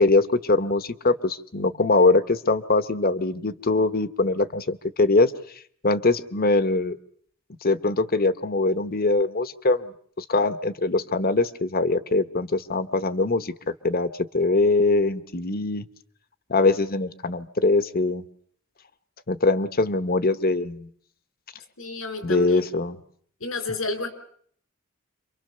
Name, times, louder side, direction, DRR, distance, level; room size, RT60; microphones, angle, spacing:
voice 1, 0.0-5.3 5.8-7.0 7.6-13.5 13.8-14.1 14.3-15.8 16.5-18.2 19.3-20.9 22.2-23.0, left 3 dB, 45° left, 13 dB, 1.1 m, -22 dB
voice 2, 21.8-22.7 23.4-24.1, left 3 dB, 85° left, 10 dB, 4.3 m, -30 dB
27.5 x 24.0 x 6.8 m, 0.62 s
head